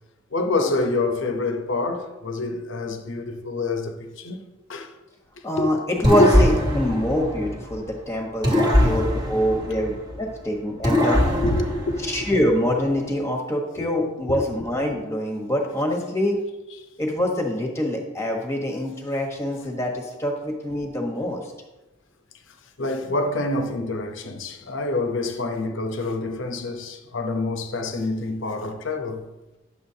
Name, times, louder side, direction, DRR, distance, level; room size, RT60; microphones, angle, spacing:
voice 1, 0.3-4.4 4.7-4.9 5.6-5.7 6.2-6.3 11.4-12.1 13.8-14.0 14.4-14.5 22.8-29.2, left 2 dB, 65° left, 0.9 m, -26 dB
voice 2, 5.4-11.2 12.1-16.4 17.0-21.5, left 1 dB, 15° left, 1.2 m, -25 dB
sound 1, 6.0-7.9 8.4-10.3 10.8-12.6, left 1 dB, 20° right, 1.3 m, -22 dB
10.5 x 7.1 x 2.8 m
head